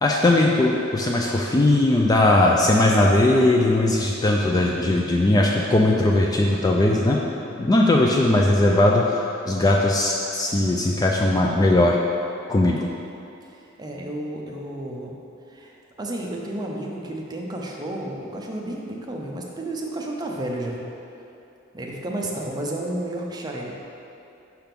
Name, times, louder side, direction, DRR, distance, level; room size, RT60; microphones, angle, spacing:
voice 1, 0.0-7.2 7.6-12.0 12.5-12.8, left 2 dB, 20° left, -1 dB, 0.3 m, -19 dB
voice 2, 13.5-15.2 15.5-20.8 21.7-23.7, right 1 dB, 20° right, -1 dB, 0.6 m, -32 dB
5.7 x 3.5 x 5.9 m, 2.8 s
head